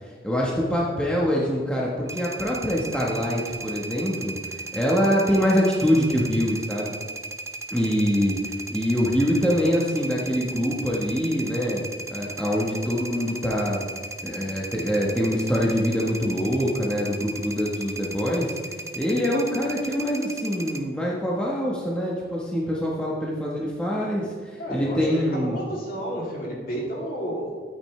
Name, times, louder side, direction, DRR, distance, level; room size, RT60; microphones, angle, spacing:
voice 1, 0.2-6.9 7.7-11.8 12.1-13.8 14.2-18.6 19.0-25.6, equal, 5° left, -4 dB, 1.1 m, -24 dB
sound 1, 2.1-20.8, right 2 dB, 15° right, 0.5 m, -36 dB
voice 2, 24.6-27.6, equal, 50° left, -4 dB, 2.8 m, -31 dB
12.5 x 8.9 x 3.2 m, 1.5 s
head